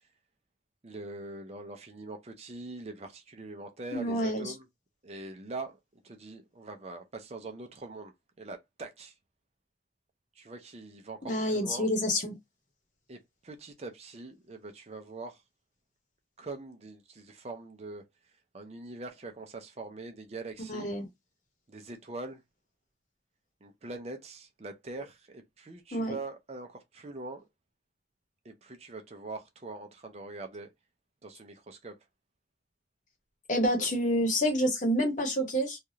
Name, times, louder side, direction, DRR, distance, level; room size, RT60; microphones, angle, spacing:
voice 1, 0.8-4.7 5.0-9.1 10.4-11.9 13.1-15.4 16.4-18.0 18.5-20.9 21.7-22.4 23.6-27.5 28.4-30.7 31.2-32.0, right 2 dB, 35° right, 0.5 m, -43 dB
voice 2, 3.9-4.5 11.2-12.3 20.7-21.1 25.9-26.2 33.5-35.8, equal, 45° left, 1.0 m, -28 dB
3.3 x 2.3 x 2.7 m
head